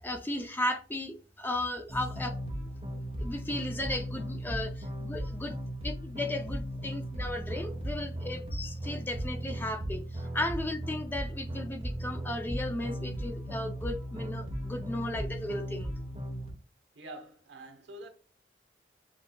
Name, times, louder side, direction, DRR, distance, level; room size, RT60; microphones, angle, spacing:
voice 1, 0.0-2.4 2.9-5.6 5.8-15.9, left 1 dB, 10° left, 0.4 m, -35 dB
sound 1, 1.9-16.5, equal, 30° right, 1.1 m, -37 dB
voice 2, 16.9-18.1, right 1 dB, 85° right, 1.0 m, -46 dB
7.4 x 2.8 x 2.2 m
head